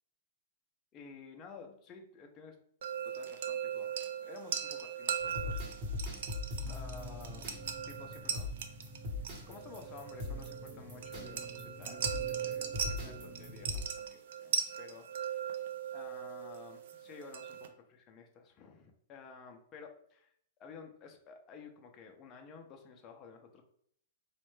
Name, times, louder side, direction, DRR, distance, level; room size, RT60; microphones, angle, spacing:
voice 1, 0.9-2.6 3.0-3.9 4.2-5.7 6.7-8.6 9.2-15.6 15.9-23.6, left 5 dB, 20° left, 3 dB, 0.4 m, -53 dB
sound 1, 2.8-17.7, right 8 dB, 55° right, 0.4 m, -39 dB
sound 2, 5.2-13.8, left 2 dB, 30° right, 0.9 m, -42 dB
4.1 x 2.1 x 3.1 m, 0.67 s
hypercardioid pair, 165°, 0 cm